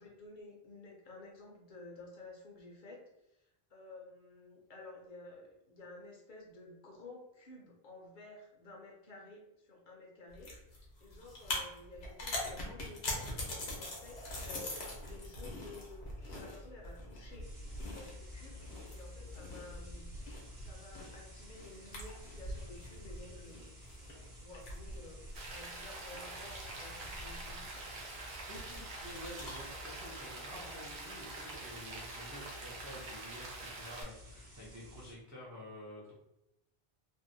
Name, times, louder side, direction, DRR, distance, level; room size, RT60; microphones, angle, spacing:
voice 1, 0.0-3.0 3.3-17.5 17.9-18.6 18.9-20.1 20.6-28.0, left 2 dB, 60° left, -1 dB, 0.7 m, -53 dB
sound 1, 10.3-29.7, left 1 dB, 85° left, 1.0 m, -44 dB
sound 2, 17.4-35.1, left 1 dB, 55° right, 1.0 m, -53 dB
Rain, 25.4-34.0, right 2 dB, 90° right, 0.8 m, -46 dB
voice 2, 28.5-36.1, equal, 25° right, -6 dB, 0.4 m, -49 dB
2.6 x 2.1 x 2.5 m, 0.87 s
omnidirectional pair, 1.0 m